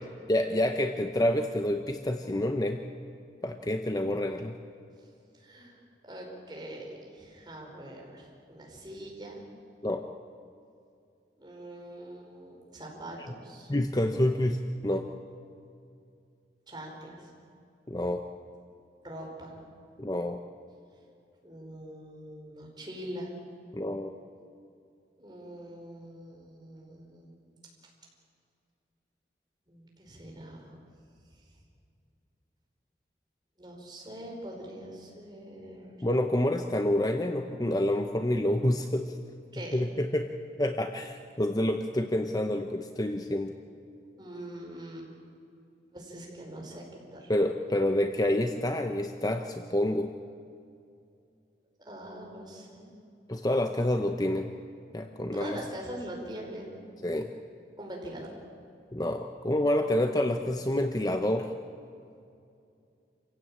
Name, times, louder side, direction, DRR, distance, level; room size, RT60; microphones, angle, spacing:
voice 1, 0.3-2.8 3.4-4.6 9.8-10.0 13.7-15.1 17.9-18.2 20.0-20.4 23.7-24.1 36.0-39.1 39.7-40.3 40.6-43.5 47.3-50.1 53.3-54.5 54.9-55.6 57.0-57.3 58.9-61.5, left 1 dB, 20° left, 6 dB, 0.8 m, -28 dB
voice 2, 5.3-5.8 6.0-9.4 11.4-13.7 16.7-17.3 19.0-19.5 21.4-23.3 25.2-27.4 29.7-30.8 33.6-36.0 39.5-39.9 44.2-45.1 45.9-47.3 51.8-52.9 55.3-56.8 57.8-58.3, right 1 dB, 25° right, -1 dB, 4.9 m, -43 dB
27.0 x 16.0 x 8.8 m, 2.5 s
head